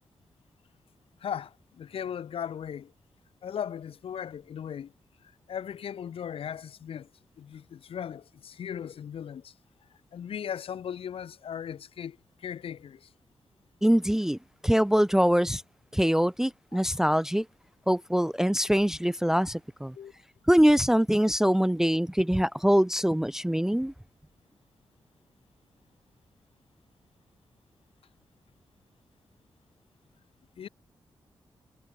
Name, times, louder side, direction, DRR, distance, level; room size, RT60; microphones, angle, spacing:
voice 1, 1.2-2.9 3.4-4.9 5.5-7.1 7.4-9.5 10.1-13.1 20.0-20.1 30.6-30.7, left 8 dB, 75° left, 2.6 m, -37 dB
voice 2, 13.8-14.4 14.6-15.6 15.9-17.5 17.9-19.9 20.5-23.9, equal, 5° right, 0.4 m, -23 dB
supercardioid pair, 40°, 10 cm